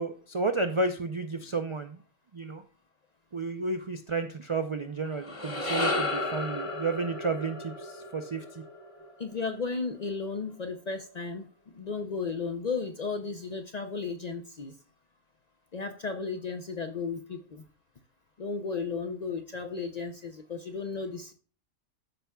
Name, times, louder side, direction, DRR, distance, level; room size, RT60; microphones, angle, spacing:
voice 1, 0.0-2.0 2.3-2.6 3.3-8.6, right 3 dB, 50° right, 7 dB, 0.3 m, -32 dB
sound 1, 5.1-9.5, left 2 dB, 30° left, 1.1 m, -33 dB
voice 2, 9.2-11.5 11.7-14.7 15.7-17.6 18.4-21.3, left 4 dB, 50° left, 6 dB, 0.5 m, -34 dB
13.0 x 5.6 x 2.3 m, 0.39 s
omnidirectional pair, 1.3 m